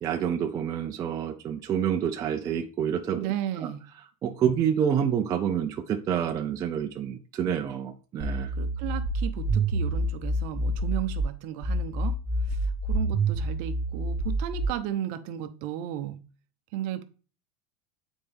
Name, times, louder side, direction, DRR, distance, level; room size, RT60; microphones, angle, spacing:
voice 1, 0.0-3.3 3.6-3.7 4.2-8.5, right 8 dB, 15° right, 0.3 m, -28 dB
voice 2, 3.1-3.8 8.6-12.2 12.5-16.2 16.7-17.0, right 12 dB, 40° right, 0.7 m, -34 dB
sound 1, 8.2-11.2 11.6-14.6, right 1 dB, 20° left, 2.3 m, -28 dB
9.1 x 4.3 x 3.4 m
supercardioid pair, 170°, 20 cm